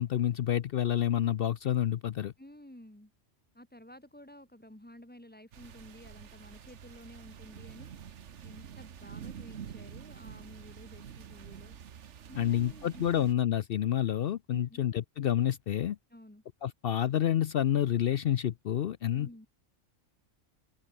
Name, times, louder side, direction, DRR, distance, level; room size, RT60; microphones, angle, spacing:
voice 1, 0.0-2.3 12.4-16.0 16.6-19.5, left 10 dB, 60° left, 0.7 m, -29 dB
voice 2, 2.4-3.1 3.5-7.9 8.4-11.8 12.3-13.2 14.5-14.9 16.1-16.4 19.1-19.5, left 1 dB, 10° left, 2.0 m, -52 dB
sound 1, 5.5-13.3, right 8 dB, 70° right, 1.3 m, -47 dB
open air
omnidirectional pair, 1.3 m